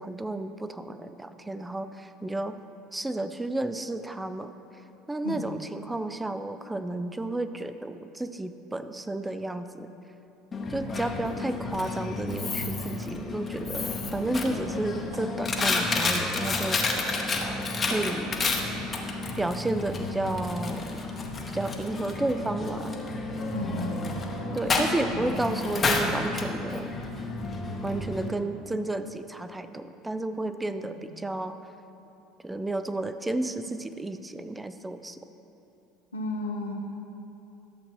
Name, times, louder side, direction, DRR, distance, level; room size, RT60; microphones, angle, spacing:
voice 1, 0.0-2.6 2.9-4.5 5.1-9.9 10.7-17.0 17.8-18.3 19.4-21.0 21.5-22.9 24.5-26.9 27.8-31.6 32.4-35.2, right 2 dB, 10° right, 10 dB, 0.4 m, -32 dB
voice 2, 5.2-5.6 23.5-24.1 25.1-25.3 31.1-31.2 36.1-36.7, left 1 dB, 85° left, 0 dB, 0.8 m, -33 dB
Coin (dropping), 10.5-28.3, left 3 dB, 30° left, 0.9 m, -31 dB
sound 1, 13.7-18.7 18.9-19.0, right 1 dB, 70° right, 1.2 m, -44 dB
11.0 x 7.3 x 3.0 m, 2.9 s
figure-of-eight pair, 65°, 0 cm